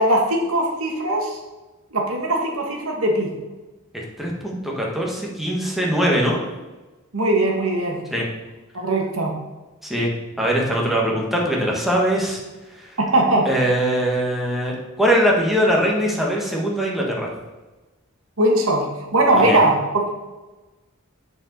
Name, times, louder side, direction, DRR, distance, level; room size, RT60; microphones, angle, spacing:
voice 1, 0.0-1.4 1.9-3.3 7.1-8.0 8.7-9.3 13.0-13.5 18.4-20.1, right 1 dB, 70° right, 1 dB, 1.6 m, -20 dB
voice 2, 3.9-6.4 8.1-8.2 9.8-12.4 13.4-17.3 19.4-19.6, equal, ahead, -2 dB, 1.5 m, -21 dB
7.1 x 4.8 x 5.3 m, 1.2 s
head